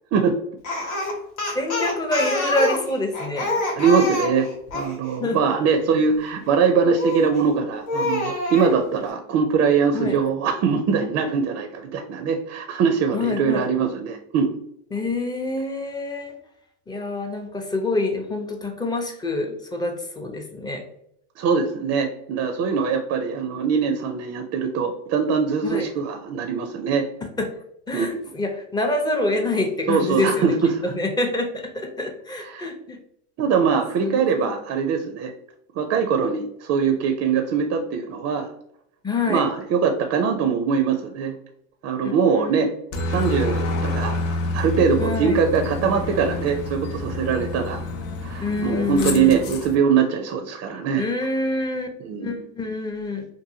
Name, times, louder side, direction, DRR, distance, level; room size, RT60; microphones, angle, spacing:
Speech, 0.6-4.9 7.0-7.4 7.9-8.7, left 1 dB, 85° left, 0.9 m, -26 dB
voice 1, 1.5-3.5 5.2-5.4 9.9-10.2 13.1-13.6 14.9-16.4 16.9-20.8 25.6-25.9 27.4-27.5 27.9-30.6 30.8-33.0 34.0-34.5 39.0-39.4 42.0-42.7 45.0-45.4 48.4-49.5 51.0-51.9 52.2-53.2, left 2 dB, 10° left, 3 dB, 0.5 m, -26 dB
voice 2, 3.8-4.5 4.7-14.5 21.4-27.1 27.9-28.2 29.9-30.8 32.4-32.7 33.4-35.3 35.8-38.5 39.3-41.4 41.8-42.7 43.1-47.8 48.2-51.0 52.0-52.4, right 6 dB, 45° right, 5 dB, 0.4 m, -22 dB
Aircraft, 42.9-49.7, left 2 dB, 55° left, 0.6 m, -28 dB
2.6 x 2.6 x 2.7 m, 0.74 s
supercardioid pair, 95°, 34 cm